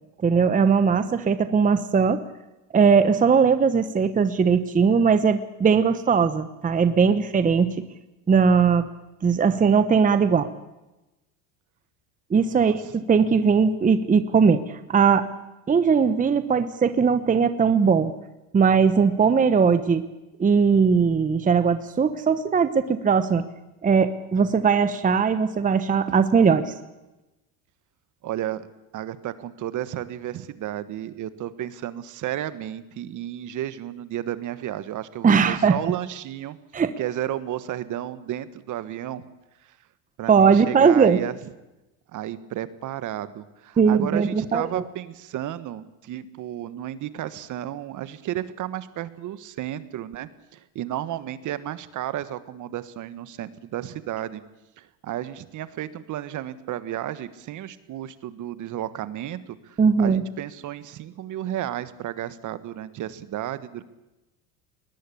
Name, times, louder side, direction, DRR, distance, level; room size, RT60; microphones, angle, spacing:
voice 1, 0.2-2.2 2.7-7.8 8.3-8.9 9.2-10.5 12.3-15.3 15.7-18.1 18.5-20.0 20.4-23.4 23.8-26.7 35.2-35.8 36.7-36.9 40.3-41.2 43.8-44.8 59.8-60.2, right 6 dB, 20° right, 11 dB, 1.1 m, -19 dB
voice 2, 12.5-12.9 28.2-28.7 28.9-36.6 37.0-39.2 39.6-39.8 40.2-41.3 42.1-54.4 54.8-63.8, right 12 dB, 45° right, 14 dB, 1.5 m, -33 dB
21.5 x 20.0 x 8.6 m, 1.0 s
supercardioid pair, 115°, 42 cm